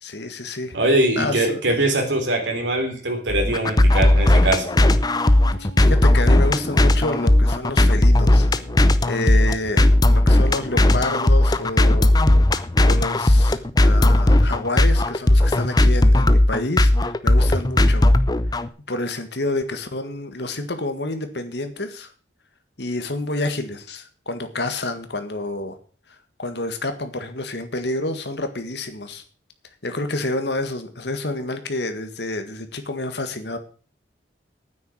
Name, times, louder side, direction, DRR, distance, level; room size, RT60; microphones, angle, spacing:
voice 1, 0.0-0.8 1.1-1.8 5.6-8.5 9.0-12.1 12.8-18.1 18.9-22.1 22.8-25.8 26.1-29.2 29.6-33.6, left 2 dB, 65° left, 8 dB, 1.8 m, -29 dB
voice 2, 0.7-4.7, right 1 dB, 80° right, 2 dB, 3.7 m, -22 dB
sound 1, 3.3-18.7, left 1 dB, 20° left, 0.6 m, -16 dB
sound 2, 4.7-9.9, right 3 dB, 55° right, 5.6 m, -40 dB
9.5 x 9.5 x 7.2 m, 0.40 s
head